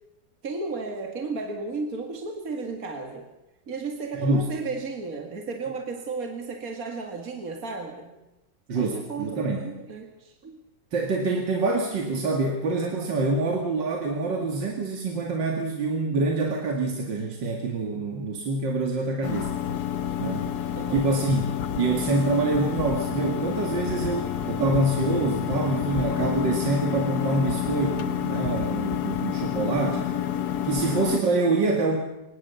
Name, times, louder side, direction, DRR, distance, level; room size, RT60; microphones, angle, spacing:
voice 1, 0.4-3.3 3.7-8.1 8.7-10.6 20.8-21.1, right 4 dB, 50° right, 4 dB, 2.5 m, -34 dB
voice 2, 4.2-4.5 8.7-9.7 10.9-19.5 20.2-20.5 20.9-21.4 21.8-30.1 30.6-32.0, right 3 dB, 75° right, 2 dB, 2.8 m, -26 dB
sound 1, 19.2-31.2, left 9 dB, 60° left, 1.7 m, -29 dB
25.0 x 20.0 x 7.0 m, 0.96 s
omnidirectional pair, 2.0 m